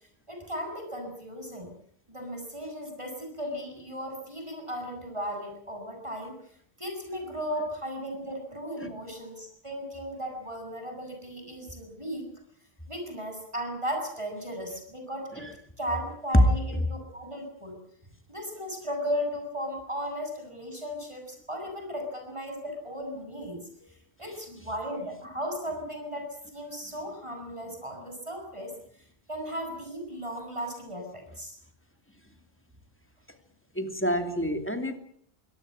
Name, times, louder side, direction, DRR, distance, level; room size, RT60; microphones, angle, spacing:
voice 1, 0.3-1.7 2.1-6.3 6.8-12.2 12.9-15.5 15.8-17.7 18.3-23.6 23.9-28.7 29.3-31.6, equal, 30° right, 3 dB, 7.4 m, -36 dB
voice 2, 33.7-35.0, equal, 10° left, 7 dB, 2.6 m, -30 dB
24.5 x 18.0 x 8.9 m, 0.66 s
omnidirectional pair, 1.1 m